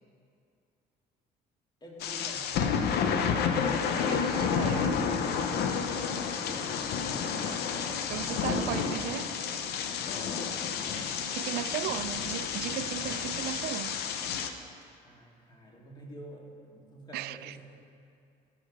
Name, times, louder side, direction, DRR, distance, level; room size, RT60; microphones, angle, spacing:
voice 1, 1.8-3.0 5.7-7.4 10.0-10.5 15.0-17.6, equal, 25° left, 2.1 m, -48 dB
sound 1, 2.0-14.5, left 6 dB, 70° left, 0.7 m, -30 dB
voice 2, 3.9-5.1 8.1-9.3 10.9-14.0 17.1-17.6, right 14 dB, 70° right, 0.4 m, -36 dB
16.0 x 5.7 x 4.9 m
cardioid pair, 110°, 17 cm